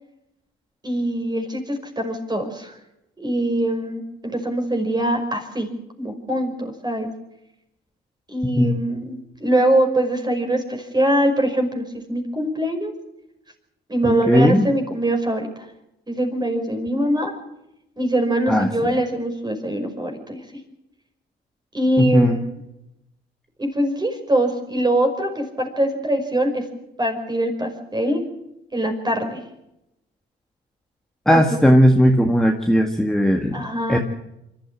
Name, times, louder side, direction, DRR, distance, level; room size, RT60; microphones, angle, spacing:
voice 1, 0.8-2.7 3.2-5.7 6.0-7.1 8.3-12.9 13.9-15.5 16.1-17.3 18.0-20.4 21.7-22.4 23.6-26.6 27.0-28.2 28.7-29.4 31.3-31.6 33.5-34.0, right 1 dB, 20° right, 4 dB, 5.4 m, -23 dB
voice 2, 14.0-14.7 18.5-18.9 22.0-22.4 31.3-34.0, equal, ahead, 2 dB, 1.8 m, -17 dB
25.0 x 13.0 x 8.7 m, 0.88 s
cardioid pair, 90°, 20 cm